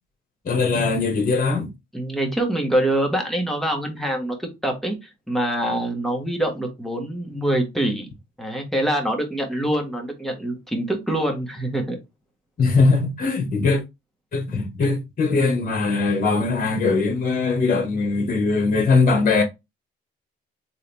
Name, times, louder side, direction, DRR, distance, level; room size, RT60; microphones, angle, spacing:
voice 1, 0.4-1.7 12.6-13.8 14.3-19.4, left 3 dB, 45° left, 1.7 m, -20 dB
voice 2, 1.9-8.1 8.4-12.0 14.5-14.6, right 1 dB, ahead, 1.6 m, -25 dB
3.8 x 2.8 x 3.4 m
cardioid pair, 90°, 20 cm